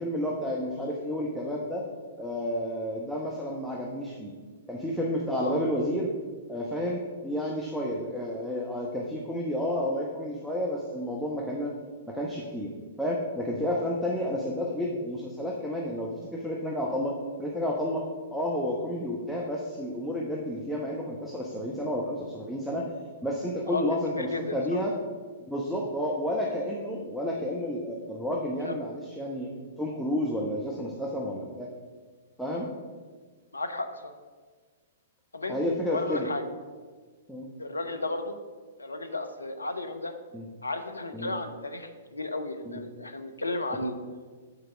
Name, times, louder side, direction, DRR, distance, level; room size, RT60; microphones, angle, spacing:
voice 1, 0.0-1.8 2.2-4.3 4.7-6.1 6.5-11.7 12.1-12.7 13.0-17.1 17.4-22.8 23.2-24.9 25.5-29.5 29.8-31.7 32.4-32.7 35.5-36.3 37.3-37.5 40.3-40.4 41.1-41.3 42.6-42.8, equal, ahead, -4 dB, 0.9 m, -31 dB
voice 2, 23.7-24.6 28.6-28.7 32.5-32.6 33.5-34.1 35.3-35.6 35.9-36.4 37.6-38.3 38.8-40.1 40.6-44.0, left 2 dB, 90° left, 8 dB, 0.7 m, -34 dB
6.7 x 4.6 x 6.1 m, 1.5 s
figure-of-eight pair, 115°, 0 cm